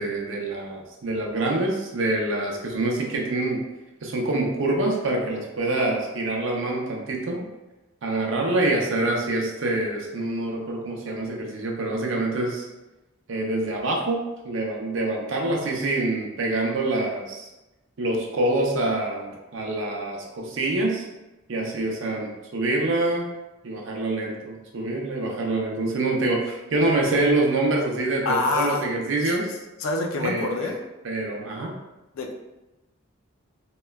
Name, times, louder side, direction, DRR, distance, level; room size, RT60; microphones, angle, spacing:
voice 1, 0.0-3.6 4.0-7.4 8.0-12.7 13.3-14.2 14.4-17.5 18.0-21.1 21.5-23.2 23.6-29.5 30.2-30.7 31.0-31.7, right 2 dB, 65° right, 0 dB, 0.5 m, -26 dB
voice 2, 28.2-28.9 29.8-30.8 32.1-32.3, left 3 dB, 85° left, 2 dB, 0.4 m, -26 dB
2.9 x 2.2 x 2.2 m, 1.0 s
head